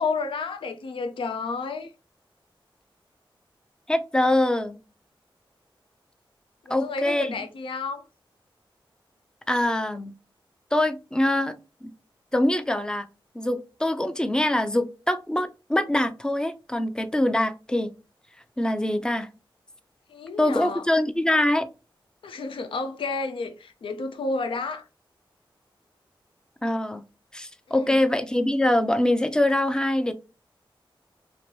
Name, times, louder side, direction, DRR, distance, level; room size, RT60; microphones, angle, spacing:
voice 1, 0.0-1.9 6.7-8.0 20.1-20.8 22.2-24.8 27.7-28.0, left 4 dB, 75° left, 0.4 m, -31 dB
voice 2, 3.9-4.8 6.7-7.4 9.5-10.1 10.7-11.5 11.8-11.9 12.3-13.1 13.3-17.9 18.6-19.3 20.4-21.7 26.6-27.0 27.3-30.1, left 1 dB, 10° left, 0.4 m, -24 dB
2.8 x 2.5 x 3.1 m
cardioid pair, 65°, 9 cm